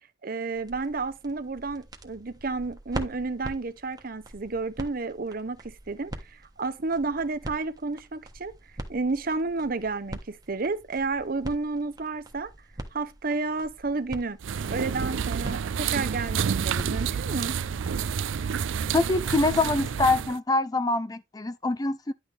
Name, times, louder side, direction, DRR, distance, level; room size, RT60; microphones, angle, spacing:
voice 1, 0.2-8.5 8.9-12.5 12.9-14.4 14.7-17.6, right 3 dB, 50° right, 0.8 m, -31 dB
sound 1, 0.5-18.0, right 1 dB, 20° right, 1.3 m, -43 dB
sound 2, 14.4-20.4, right 7 dB, 90° right, 0.4 m, -29 dB
voice 2, 18.9-22.1, left 3 dB, 20° left, 0.5 m, -25 dB
10.5 x 6.1 x 3.3 m
head